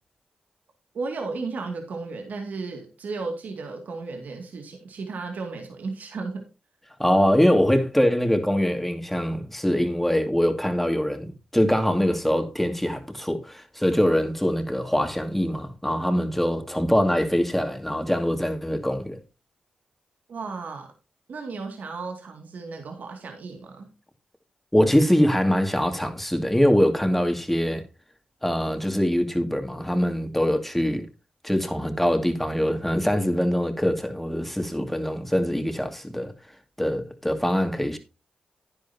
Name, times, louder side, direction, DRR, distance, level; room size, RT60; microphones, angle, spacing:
voice 1, 0.9-6.4 20.3-20.9 21.3-23.9, right 4 dB, 70° right, 2.3 m, -34 dB
voice 2, 7.0-19.2 24.7-27.8 28.4-31.1 31.4-36.3 36.8-38.0, equal, 5° left, 2.3 m, -23 dB
11.0 x 10.0 x 2.8 m
supercardioid pair, 50°, 3 cm